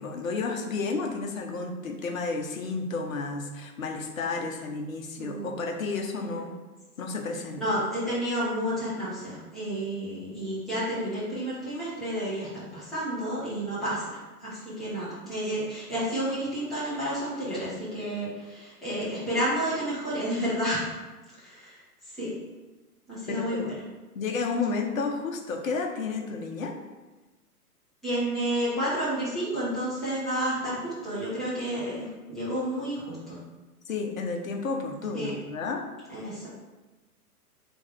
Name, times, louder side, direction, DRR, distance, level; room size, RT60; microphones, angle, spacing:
voice 1, 0.0-6.5 7.0-7.6 23.3-23.6 24.1-26.7 33.9-35.8, left 4 dB, 60° left, 3 dB, 0.8 m, -31 dB
voice 2, 7.6-20.9 21.3-21.8 22.1-22.3 23.1-23.7 28.0-33.4 35.1-35.3 36.1-36.5, equal, ahead, -13 dB, 0.5 m, -30 dB
3.5 x 3.1 x 4.2 m, 1.2 s
figure-of-eight pair, 115°, 46 cm